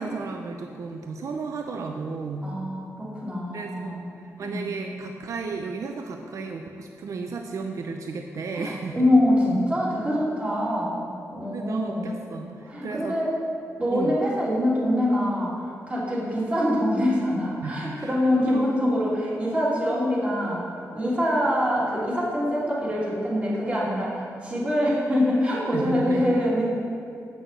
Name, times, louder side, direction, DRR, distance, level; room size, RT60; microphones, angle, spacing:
voice 1, 0.0-2.5 3.5-4.0 4.4-9.1 11.5-13.2 13.9-14.1 17.6-18.1 18.4-18.6 25.7-26.4, right 4 dB, 65° right, 3 dB, 0.5 m, -33 dB
voice 2, 2.4-4.1 4.4-4.7 8.5-12.2 12.7-13.3 13.8-20.6 20.9-26.6, left 1 dB, 25° right, -6 dB, 2.6 m, -24 dB
8.1 x 6.1 x 6.5 m, 2.4 s
wide cardioid pair, 120°, 6 cm